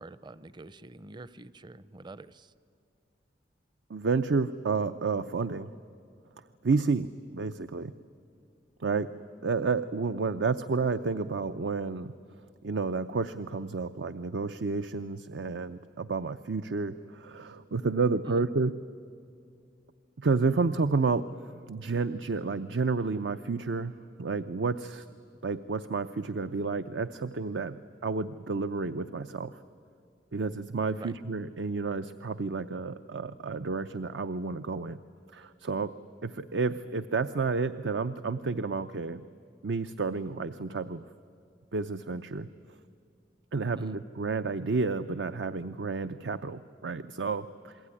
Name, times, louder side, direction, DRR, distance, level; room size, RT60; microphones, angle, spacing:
voice 1, 0.0-2.5 18.3-18.4 30.9-31.1 43.8-44.0, right 2 dB, 25° right, 17 dB, 0.6 m, -45 dB
voice 2, 3.9-5.8 6.6-7.9 8.8-9.1 9.4-12.1 12.6-18.7 20.2-23.9 24.2-25.1 25.4-29.6 30.3-35.0 35.3-35.9 36.2-39.2 39.6-41.0 41.7-42.8 43.5-47.8, right 4 dB, 85° right, 11 dB, 0.6 m, -30 dB
28.0 x 21.5 x 9.9 m, 2.4 s
head